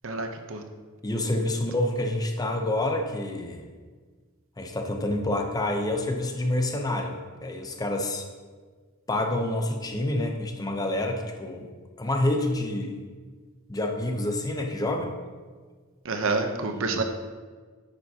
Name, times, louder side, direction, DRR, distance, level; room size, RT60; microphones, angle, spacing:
voice 1, 0.0-0.6 16.0-17.0, right 3 dB, 65° right, 6 dB, 0.8 m, -28 dB
voice 2, 1.0-3.6 4.6-8.2 9.1-11.7 12.0-13.0 13.7-15.1 16.6-17.0, left 1 dB, 15° left, 3 dB, 0.7 m, -28 dB
10.5 x 7.0 x 2.9 m, 1.5 s
head